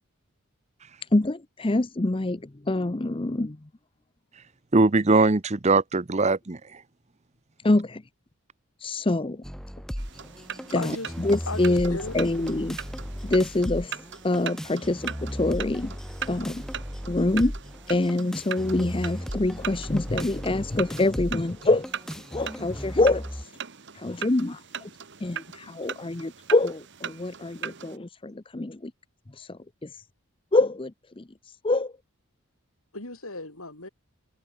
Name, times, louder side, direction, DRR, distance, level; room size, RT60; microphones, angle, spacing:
voice 1, 1.1-3.6 7.6-8.0 8.8-9.4 10.7-12.8 13.2-14.0 14.2-16.0 16.3-16.6 17.1-17.5 17.9-21.9 22.1-23.5 23.9-24.9 25.2-28.9 29.3-30.0 30.5-31.9, left 2 dB, 25° left, 0.6 m, -26 dB
voice 2, 4.7-6.8, right 3 dB, 30° right, 0.7 m, -21 dB
sound 1, 9.4-23.4, equal, ahead, 5.9 m, -36 dB
sound 2, 10.0-28.0, right 8 dB, 55° right, 1.6 m, -40 dB
voice 3, 10.7-11.1 11.5-12.2 32.9-33.9, left 2 dB, 75° left, 6.6 m, -36 dB
head